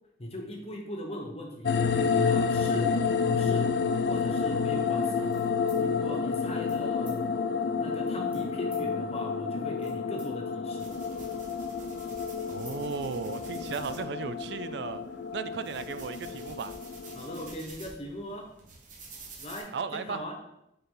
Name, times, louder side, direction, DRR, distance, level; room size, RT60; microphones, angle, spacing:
voice 1, 0.2-3.0 3.3-3.7 4.1-5.3 5.8-7.2 7.8-10.9 17.1-18.5 19.4-20.4, left 1 dB, 35° left, 2 dB, 1.0 m, -39 dB
sound 1, 1.6-17.5, left 5 dB, 60° left, 0.4 m, -30 dB
sound 2, 5.3-5.8 6.6-6.8 7.0-7.2 8.3-8.8 9.5-10.3 10.6-12.8 13.1-13.2 13.5-13.8, right 1 dB, 10° right, 2.2 m, -53 dB
sound 3, 10.8-19.6, right 3 dB, 45° right, 1.1 m, -50 dB
voice 2, 12.5-15.0 15.3-16.7 19.7-20.2, right 5 dB, 70° right, 12 dB, 0.4 m, -35 dB
6.7 x 4.0 x 3.8 m, 0.82 s
head